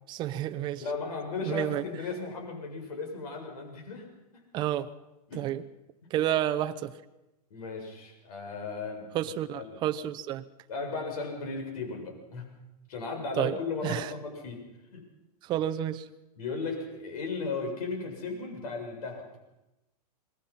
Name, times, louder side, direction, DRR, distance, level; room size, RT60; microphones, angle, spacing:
voice 1, 0.1-0.8 1.4-1.8 4.5-4.9 5.4-5.6 6.1-6.9 9.1-10.4 13.4-13.5 13.8-14.1 15.5-16.0, right 12 dB, 20° right, 9 dB, 0.7 m, -30 dB
voice 2, 0.8-4.1 5.3-5.5 7.5-9.1 9.5-9.8 10.7-12.6 12.9-14.6 14.9-15.0 16.4-19.3, left 4 dB, 65° left, 2 dB, 7.2 m, -36 dB
26.5 x 20.5 x 5.8 m, 0.97 s
hypercardioid pair, 155°, 21 cm